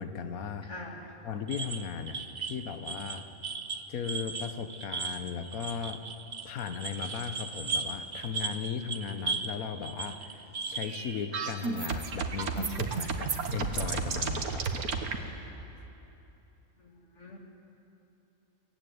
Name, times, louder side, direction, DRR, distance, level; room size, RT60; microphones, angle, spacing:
voice 1, 0.0-0.7 1.2-3.2 3.9-6.0 6.4-14.9, left 6 dB, 80° left, 9 dB, 1.4 m, -37 dB
voice 2, 0.6-1.1 16.8-17.4, left 2 dB, 55° left, 0 dB, 2.7 m, -44 dB
sound 1, 1.5-9.6 9.8-11.0, right 4 dB, 40° right, 1.0 m, -36 dB
sound 2, 10.8-15.2, right 5 dB, 85° right, 1.7 m, -32 dB
23.0 x 15.0 x 9.4 m, 3.0 s
omnidirectional pair, 1.5 m